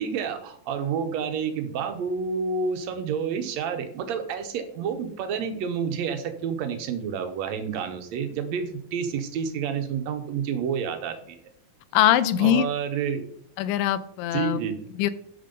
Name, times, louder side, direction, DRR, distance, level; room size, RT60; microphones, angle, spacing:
voice 1, 0.0-11.4 12.4-13.3 14.3-14.8, right 6 dB, 70° right, 7 dB, 1.9 m, -29 dB
voice 2, 11.9-12.7 13.6-14.6 15.0-15.1, left 11 dB, 85° left, 13 dB, 2.2 m, -22 dB
11.5 x 4.4 x 5.3 m, 0.66 s
omnidirectional pair, 3.8 m